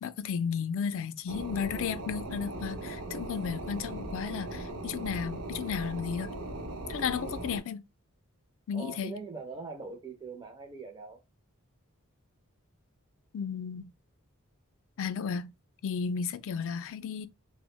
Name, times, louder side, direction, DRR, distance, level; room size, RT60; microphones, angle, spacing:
voice 1, 0.0-6.3 6.9-7.8 8.7-9.2 13.3-13.9 15.0-15.5 15.8-17.3, left 6 dB, 65° left, 0.4 m, -34 dB
sound 1, 1.3-7.6, right 1 dB, 80° right, 0.7 m, -39 dB
voice 2, 8.7-11.2, right 4 dB, 20° right, 0.4 m, -42 dB
3.5 x 2.0 x 3.0 m
head